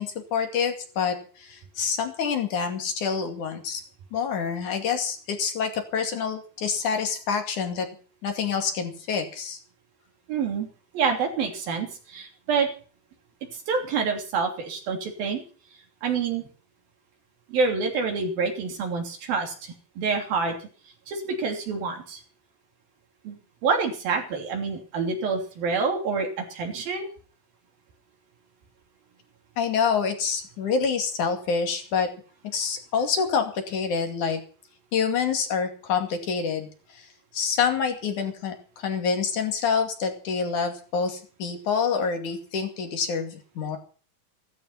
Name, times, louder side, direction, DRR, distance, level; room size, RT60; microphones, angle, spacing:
voice 1, 0.0-3.8 4.1-7.9 8.2-9.6 29.6-32.1 32.5-34.4 34.9-36.7 36.9-37.1 37.3-43.8, left 6 dB, 60° left, 5 dB, 3.7 m, -27 dB
voice 2, 10.3-10.7 10.9-12.7 13.5-15.4 16.0-16.5 17.5-20.7 21.1-22.2 23.2-27.1, right 5 dB, 80° right, 2 dB, 5.0 m, -27 dB
15.5 x 14.0 x 5.8 m, 0.40 s
omnidirectional pair, 4.1 m